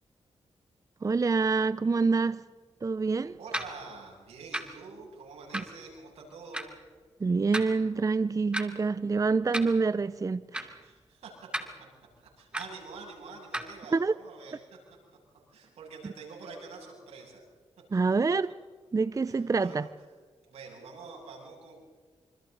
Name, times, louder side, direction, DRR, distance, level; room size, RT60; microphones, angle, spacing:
voice 1, 1.0-2.4 2.8-3.4 7.2-10.7 13.9-14.1 17.9-18.5 18.9-19.9, right 4 dB, 30° right, 0.6 m, -26 dB
voice 2, 3.4-6.7 10.8-11.5 12.2-14.6 15.5-17.4 19.3-19.9 20.5-21.8, right 4 dB, 85° right, 7.4 m, -46 dB
sound 1, 3.5-3.7 4.5-4.6 5.5-5.7 6.5-6.6 7.5-7.7 8.5-8.6 9.5-9.7 10.5-10.7 11.5-11.6 12.5-12.7 13.5-13.7, right 1 dB, 10° right, 2.6 m, -32 dB
27.0 x 26.0 x 4.0 m
cardioid pair, 60°, 11 cm